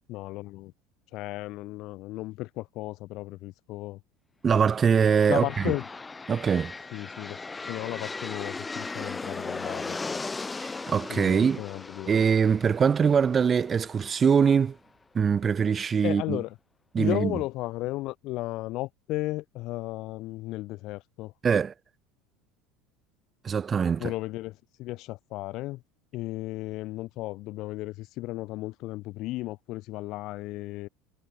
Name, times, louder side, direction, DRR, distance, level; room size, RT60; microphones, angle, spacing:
voice 1, 0.1-0.7 1.1-4.0 5.3-5.8 6.9-7.4 7.7-10.0 11.1-12.2 16.0-16.5 17.0-21.3 24.0-25.8 26.1-30.9, left 18 dB, 55° left, 0.5 m, -34 dB
voice 2, 4.4-5.7 6.3-6.7 10.6-11.6 12.1-14.8 15.1-16.4 16.9-17.4 21.4-21.7 23.4-24.1, right 6 dB, 30° right, 0.4 m, -23 dB
sound 1, 4.8-14.7, left 3 dB, 15° left, 1.2 m, -38 dB
figure-of-eight pair, 70°, 0 cm